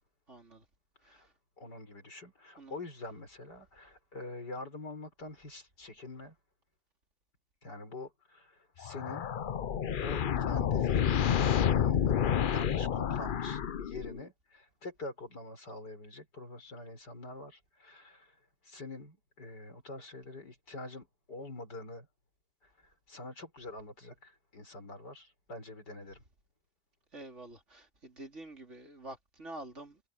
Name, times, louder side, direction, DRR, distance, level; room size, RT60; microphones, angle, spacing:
voice 1, 0.3-0.6 1.1-1.3 2.6-2.8 27.1-30.0, right 2 dB, 45° right, 3.9 m, -47 dB
voice 2, 1.6-6.4 7.6-9.3 10.0-18.4 18.6-22.1 22.6-26.2, left 2 dB, 85° left, 7.0 m, -46 dB
sound 1, 8.8-14.3, left 8 dB, 70° left, 0.4 m, -29 dB
omnidirectional pair, 1.8 m